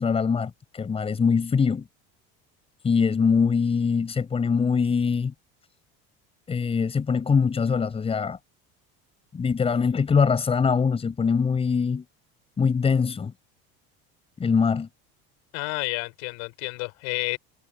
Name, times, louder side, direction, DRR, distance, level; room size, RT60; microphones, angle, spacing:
voice 1, 0.0-1.8 2.8-5.3 6.5-8.4 9.3-12.0 12.6-13.3 14.4-14.9, left 5 dB, 20° left, 6.1 m, -23 dB
voice 2, 15.5-17.4, left 32 dB, 70° left, 5.7 m, -30 dB
cardioid pair, 150°, 29 cm